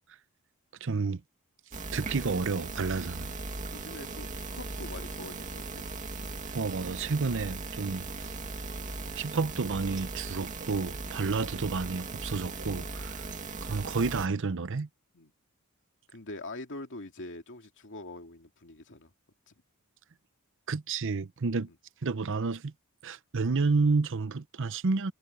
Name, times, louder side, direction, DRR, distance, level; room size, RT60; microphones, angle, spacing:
voice 1, 0.8-1.2 1.9-3.3 6.5-8.1 9.1-13.3 13.6-14.9 20.7-21.7 22.0-22.7 23.0-25.1, right 4 dB, 60° right, 0.7 m, -30 dB
sound 1, 1.7-14.3, right 3 dB, 35° right, 2.3 m, -38 dB
voice 2, 3.7-5.8 11.1-11.2 15.1-15.3 16.1-19.1 19.5-19.6 21.7-21.8, left 2 dB, 55° left, 2.7 m, -44 dB
head